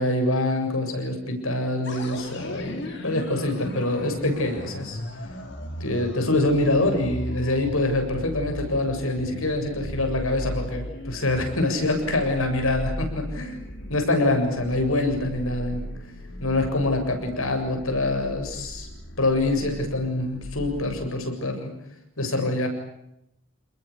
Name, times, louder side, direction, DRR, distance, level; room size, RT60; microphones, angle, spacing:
voice 1, 0.0-5.0 5.8-13.6 13.9-15.8 16.4-18.9 19.2-21.7 22.2-22.7, left 2 dB, 85° left, 5 dB, 7.5 m, -25 dB
sound 1, 1.8-21.1, equal, 55° left, 4.8 m, -37 dB
29.0 x 21.5 x 8.6 m, 0.80 s
head